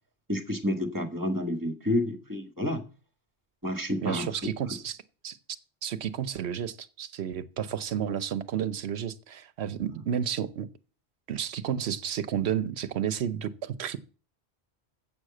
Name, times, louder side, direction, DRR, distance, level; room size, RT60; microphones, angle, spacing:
voice 1, 0.3-2.8 3.6-4.3 9.9-10.0, left 1 dB, 20° right, 1.7 m, -29 dB
voice 2, 4.0-5.0 5.2-5.4 5.8-10.7 11.3-14.0, right 9 dB, 80° right, 1.1 m, -31 dB
7.8 x 6.4 x 7.6 m
omnidirectional pair, 1.1 m